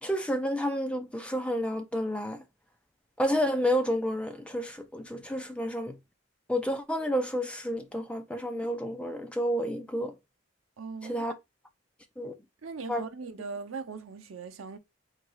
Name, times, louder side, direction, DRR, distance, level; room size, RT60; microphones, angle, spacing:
voice 1, 0.0-2.4 3.2-6.0 6.5-10.1 11.0-11.3 12.2-12.3 12.9-13.0, equal, 5° left, 0.4 m, -30 dB
voice 2, 10.8-11.4 12.2-12.3 12.6-14.8, right 4 dB, 90° right, 0.6 m, -40 dB
4.0 x 2.3 x 4.6 m
head